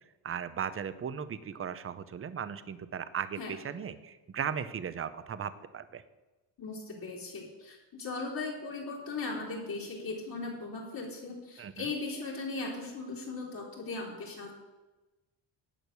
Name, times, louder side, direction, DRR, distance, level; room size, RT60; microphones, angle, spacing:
voice 1, 0.2-6.0 11.6-11.9, right 8 dB, 30° right, 13 dB, 0.6 m, -37 dB
voice 2, 6.6-14.5, left 3 dB, 50° left, -4 dB, 3.5 m, -38 dB
11.0 x 8.8 x 6.7 m, 1.1 s
cardioid pair, 145°, 46 cm